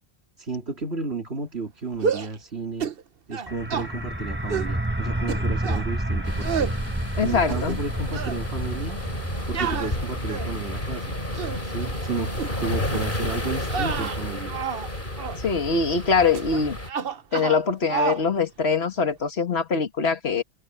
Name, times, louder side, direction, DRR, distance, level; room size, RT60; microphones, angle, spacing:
voice 1, 0.4-2.9 3.3-9.0 9.5-11.1 11.6-14.6, right 3 dB, 80° right, 3.5 m, -33 dB
sound 1, 1.9-2.4 2.8-3.0 3.3-3.9 4.5-4.7 5.3-5.9 6.4-6.8 7.3-7.9 8.1-8.4 9.5-10.6 11.2-11.6 12.3-12.5 12.9-13.1 13.6-14.9 15.2-15.4 16.3-16.6 16.9-17.6 17.9-18.2, right 6 dB, 65° right, 1.2 m, -29 dB
sound 2, 3.5-14.9, right 1 dB, 10° right, 1.4 m, -31 dB
sound 3, 6.2-16.9, left 1 dB, 50° left, 6.9 m, -31 dB
voice 2, 7.2-7.8 15.4-16.8 17.3-20.4, left 5 dB, 75° left, 2.0 m, -23 dB
omnidirectional pair, 1.1 m